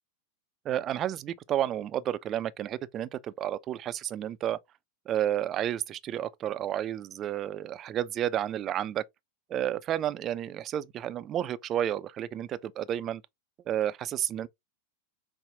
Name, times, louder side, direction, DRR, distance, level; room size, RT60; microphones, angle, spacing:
voice 1, 0.7-4.6 5.1-9.0 9.5-13.2 13.7-14.5, right 11 dB, 30° right, 0.3 m, -31 dB
5.3 x 2.0 x 2.6 m
figure-of-eight pair, 90°, 0 cm